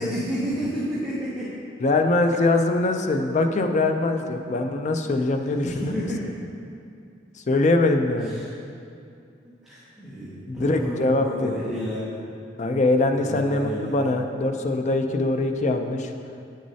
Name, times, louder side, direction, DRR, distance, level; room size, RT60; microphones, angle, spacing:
voice 1, 0.0-1.5 5.7-6.3 8.2-8.6 9.6-12.2 13.1-14.0, equal, ahead, -11 dB, 0.9 m, -31 dB
voice 2, 1.8-5.9 7.5-8.3 10.5-11.6 12.6-16.1, left 2 dB, 40° left, 5 dB, 0.4 m, -22 dB
8.6 x 6.2 x 2.7 m, 2.5 s
head